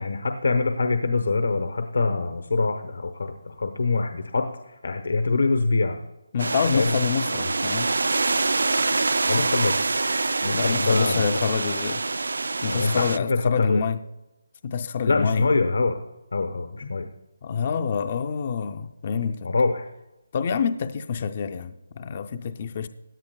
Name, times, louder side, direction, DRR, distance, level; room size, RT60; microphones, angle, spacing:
voice 1, 0.0-6.0 6.7-7.0 9.2-9.9 10.4-11.4 12.7-13.8 15.1-16.0 16.3-17.1 19.4-19.9, left 3 dB, 80° left, 6 dB, 1.0 m, -24 dB
voice 2, 6.3-7.9 10.5-12.0 12.6-14.0 14.6-15.5 16.8-16.9 17.4-19.5 20.3-22.9, left 6 dB, 30° left, 9 dB, 0.4 m, -27 dB
sound 1, 6.4-13.2, right 3 dB, 85° right, 0.4 m, -25 dB
17.0 x 10.5 x 2.2 m, 0.97 s
hypercardioid pair, 175°, 0 cm